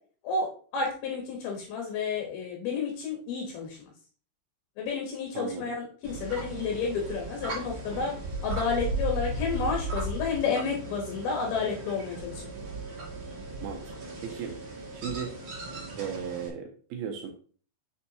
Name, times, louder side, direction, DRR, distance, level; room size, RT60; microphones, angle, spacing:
voice 1, 0.2-3.9 4.8-8.1 8.4-12.4, left 5 dB, 70° left, 0 dB, 2.9 m, -31 dB
voice 2, 5.3-5.7 13.6-13.9 14.2-14.6 14.9-15.3 15.9-17.3, right 7 dB, 85° right, 3 dB, 2.2 m, -36 dB
sound 1, 6.0-16.5, right 2 dB, 45° right, 2.7 m, -36 dB
6.9 x 6.4 x 2.9 m, 0.43 s
omnidirectional pair, 5.1 m